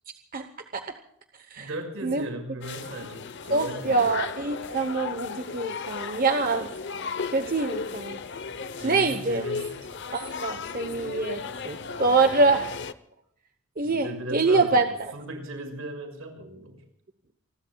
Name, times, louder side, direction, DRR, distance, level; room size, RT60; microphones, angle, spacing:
voice 1, 1.6-4.1 8.8-9.7 12.0-12.6 13.8-14.9 15.1-16.8, right 1 dB, 75° right, 4 dB, 5.8 m, -37 dB
sound 1, 2.6-12.9, left 5 dB, 55° left, 0.8 m, -35 dB
voice 2, 3.5-6.7 7.3-8.2 8.8-9.5 10.1-12.6 13.8-15.1, right 3 dB, 40° right, 7 dB, 0.9 m, -25 dB
28.5 x 21.0 x 2.3 m, 0.71 s
head